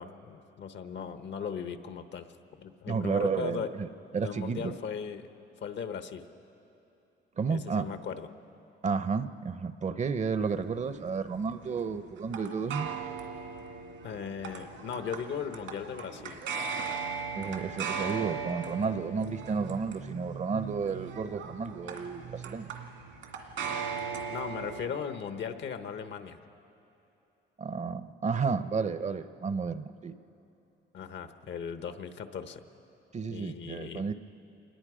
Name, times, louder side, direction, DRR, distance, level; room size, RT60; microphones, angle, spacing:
voice 1, 0.0-2.3 2.6-3.7 4.2-5.3 5.6-6.3 7.5-8.3 14.0-16.4 24.3-26.4 30.9-32.6 33.3-34.0, left 7 dB, 65° left, 9 dB, 1.1 m, -38 dB
voice 2, 2.9-3.9 4.1-4.7 7.4-7.9 8.8-12.9 17.3-22.7 27.6-30.1 33.1-34.1, right 5 dB, 35° right, 12 dB, 0.7 m, -32 dB
sound 1, 10.4-24.9, right 5 dB, 80° right, 2.2 m, -38 dB
26.5 x 20.5 x 5.0 m, 3.0 s
cardioid pair, 90°, 20 cm